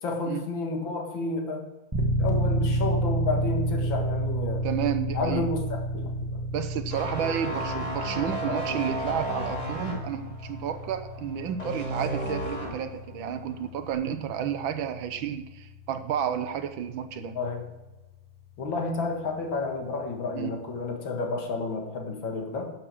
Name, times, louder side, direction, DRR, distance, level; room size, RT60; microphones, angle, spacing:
voice 1, 0.0-1.7 2.2-4.7 5.1-5.6 5.9-6.4 7.7-7.8 8.4-8.6 17.2-17.7 18.6-22.7, left 3 dB, 65° left, 2 dB, 2.4 m, -31 dB
sound 1, 1.9-18.7, right 1 dB, 10° right, 1.2 m, -32 dB
voice 2, 4.6-5.4 6.5-17.3 20.3-20.5, right 9 dB, 70° right, 9 dB, 1.5 m, -31 dB
sound 2, 6.9-12.9 13.3-13.5, right 1 dB, 20° left, 2.1 m, -33 dB
11.5 x 7.0 x 7.2 m, 1.1 s
omnidirectional pair, 2.3 m